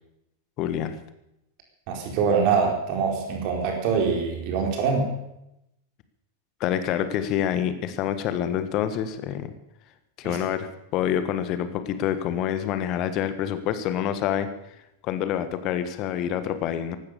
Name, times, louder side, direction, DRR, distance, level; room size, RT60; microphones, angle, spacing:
voice 1, 0.6-1.0 6.6-9.5 10.2-14.5 15.0-17.0, left 10 dB, 40° left, 11 dB, 1.5 m, -27 dB
voice 2, 1.9-5.0 10.2-10.4, right 5 dB, 45° right, 1 dB, 4.3 m, -24 dB
15.5 x 12.5 x 6.9 m, 0.84 s
figure-of-eight pair, 90°, 0 cm